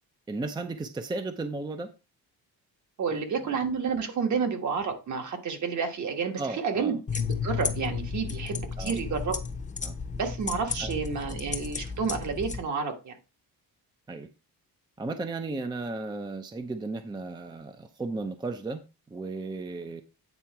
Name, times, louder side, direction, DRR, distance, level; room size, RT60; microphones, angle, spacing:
voice 1, 0.3-1.9 3.1-3.2 6.4-7.0 8.8-9.0 9.8-10.0 10.8-10.9 11.3-11.4 14.1-14.3 15.0-20.0, right 3 dB, 10° right, 0.5 m, -35 dB
voice 2, 3.0-9.4 10.1-13.2, right 5 dB, 50° right, 1.5 m, -30 dB
sound 1, 7.1-12.6, left 5 dB, 20° left, 0.8 m, -33 dB
9.0 x 3.9 x 4.6 m
cardioid pair, 145°, 36 cm